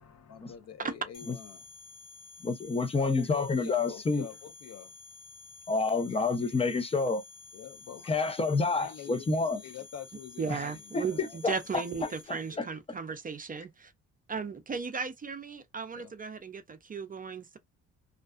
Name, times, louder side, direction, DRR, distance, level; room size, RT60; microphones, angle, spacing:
voice 1, 0.0-1.7 3.0-4.9 6.1-6.2 6.5-6.7 7.5-8.3 8.8-11.5 12.0-12.7 15.9-16.1, left 7 dB, 55° left, 0.7 m, -46 dB
sound 1, 1.1-12.5, left 4 dB, 85° left, 1.3 m, -51 dB
voice 2, 2.4-4.3 5.7-7.2 8.1-9.6 10.9-11.8 12.3-12.7, left 3 dB, 20° left, 0.6 m, -29 dB
voice 3, 10.4-13.9 14.3-17.6, right 5 dB, 30° right, 0.5 m, -36 dB
2.4 x 2.3 x 2.3 m
cardioid pair, 90°, 30 cm